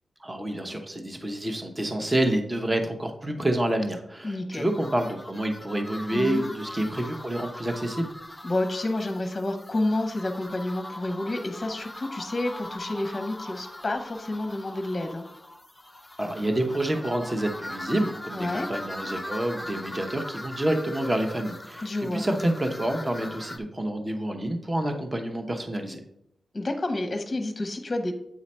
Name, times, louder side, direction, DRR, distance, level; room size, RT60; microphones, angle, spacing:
voice 1, 0.2-8.1 16.2-26.0, right 1 dB, 15° right, 5 dB, 0.9 m, -28 dB
voice 2, 4.2-4.7 6.1-6.5 8.4-15.2 18.3-18.7 21.8-22.2 26.5-28.1, left 2 dB, 25° left, 5 dB, 0.9 m, -29 dB
sound 1, 4.5-23.6, left 1 dB, 10° left, 0.5 m, -41 dB
8.4 x 4.8 x 4.3 m, 0.77 s
wide cardioid pair, 140°, 0 cm